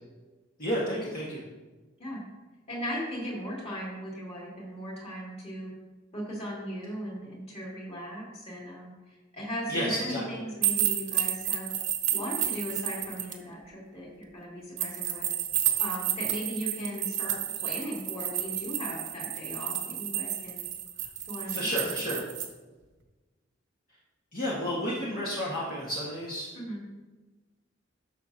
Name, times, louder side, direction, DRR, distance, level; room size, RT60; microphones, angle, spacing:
voice 1, 0.6-1.4 9.7-10.2 21.5-22.2 24.3-26.5, equal, 50° left, -7 dB, 1.6 m, -31 dB
voice 2, 2.7-5.7 6.1-11.8 12.1-15.3 15.8-20.6 21.3-21.7 26.5-26.8, equal, 35° left, -4 dB, 2.6 m, -37 dB
sound 1, 10.6-13.3 14.8-22.5, right 11 dB, 70° right, 1.0 m, -31 dB
11.0 x 6.5 x 2.8 m, 1.2 s
head